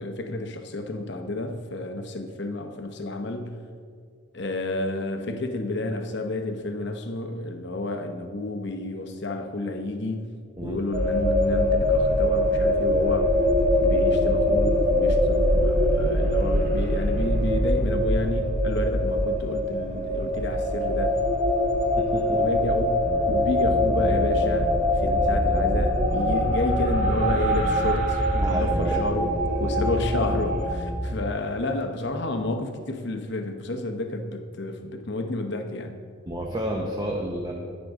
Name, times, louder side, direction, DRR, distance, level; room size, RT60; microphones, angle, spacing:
voice 1, 0.0-3.5 4.3-10.3 10.6-13.3 13.8-21.2 22.3-29.4 29.6-36.0, left 2 dB, 55° left, 6 dB, 0.8 m, -30 dB
sound 1, 10.9-30.7, left 1 dB, 40° right, 1.4 m, -23 dB
voice 2, 21.9-22.4 28.4-29.0 29.6-29.7 36.3-37.5, right 1 dB, 20° right, -1 dB, 0.7 m, -30 dB
sound 2, 23.0-31.2, equal, 10° left, 1.4 m, -30 dB
11.5 x 9.2 x 3.6 m, 2.1 s
head